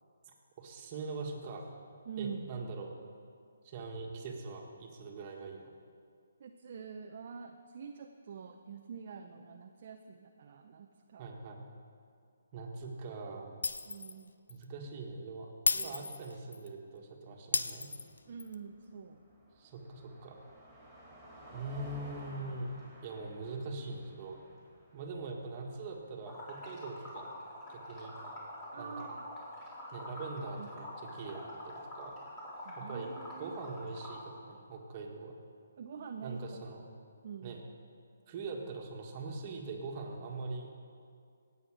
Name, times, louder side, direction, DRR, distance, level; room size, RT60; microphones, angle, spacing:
voice 1, 0.3-1.7 2.2-2.9 3.6-5.6 11.2-11.7 12.5-13.5 14.5-17.9 19.6-20.4 21.5-24.4 24.9-27.3 27.7-28.2 28.8-29.1 29.9-32.2 32.8-35.4 36.2-36.9 37.4-37.6 38.3-40.7, right 3 dB, 30° right, 1 dB, 1.8 m, -42 dB
voice 2, 2.1-2.5 6.4-11.3 13.9-14.3 18.3-19.2 28.7-29.2 30.6-30.7 32.6-33.5 35.8-36.7 37.2-37.6, right 6 dB, 50° right, 3 dB, 0.7 m, -46 dB
Shatter, 13.6-14.2 14.5-14.6 15.7-16.7 17.5-18.5, left 3 dB, 85° left, 0.6 m, -33 dB
Car passing by, 17.9-26.0, right 1 dB, 5° right, 3.5 m, -54 dB
Liquid, 26.3-34.2, left 1 dB, 20° left, 3.7 m, -46 dB
17.5 x 8.0 x 5.0 m, 2.3 s
hypercardioid pair, 155°, 0 cm